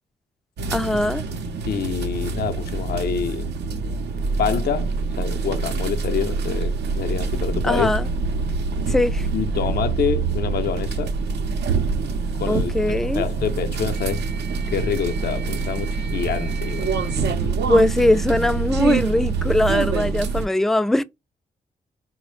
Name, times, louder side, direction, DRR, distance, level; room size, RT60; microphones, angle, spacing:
sound 1, 0.6-20.5, right 4 dB, 80° right, 0.6 m, -25 dB
voice 1, 0.7-1.2 7.6-8.1 8.9-9.3 12.4-13.2 17.4-21.0, left 1 dB, ahead, 0.3 m, -21 dB
voice 2, 1.7-3.4 4.4-4.9 5.2-7.9 9.3-11.1 12.3-14.2 14.7-16.9, left 7 dB, 65° left, 0.5 m, -26 dB
4.0 x 2.0 x 3.0 m
cardioid pair, 55°, 17 cm